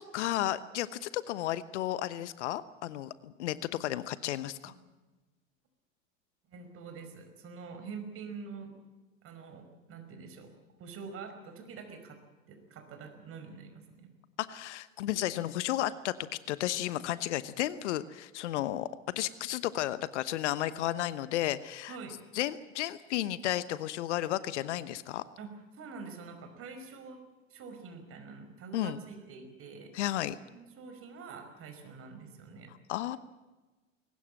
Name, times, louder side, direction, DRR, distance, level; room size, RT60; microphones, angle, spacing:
voice 1, 0.0-4.7 14.4-18.9 19.1-22.0 22.3-25.2 28.7-29.0 29.9-30.4 32.7-33.2, left 13 dB, 60° left, 15 dB, 1.1 m, -33 dB
voice 2, 6.5-8.7 9.2-10.5 10.8-12.2 12.5-14.1 21.9-22.2 25.4-25.5 25.8-27.2 27.5-29.9 30.5-32.7, right 5 dB, 35° right, 6 dB, 5.2 m, -46 dB
22.0 x 19.0 x 7.7 m, 1.2 s
figure-of-eight pair, 90°, 39 cm